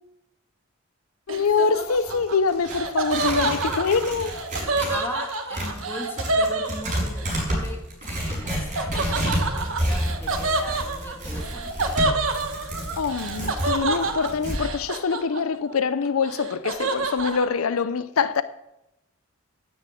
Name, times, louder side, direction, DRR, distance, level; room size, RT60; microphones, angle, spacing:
voice 1, 1.3-4.5 13.0-18.4, left 5 dB, 85° left, 0.5 m, -24 dB
Tearing, 1.3-5.0 5.3-14.6, equal, 40° right, 6.0 m, -30 dB
Laughter, 1.3-7.3 8.8-15.7 16.0-17.5, right 3 dB, 70° right, 1.4 m, -28 dB
voice 2, 4.7-11.8, left 1 dB, 10° left, 2.5 m, -38 dB
10.0 x 9.9 x 7.6 m
head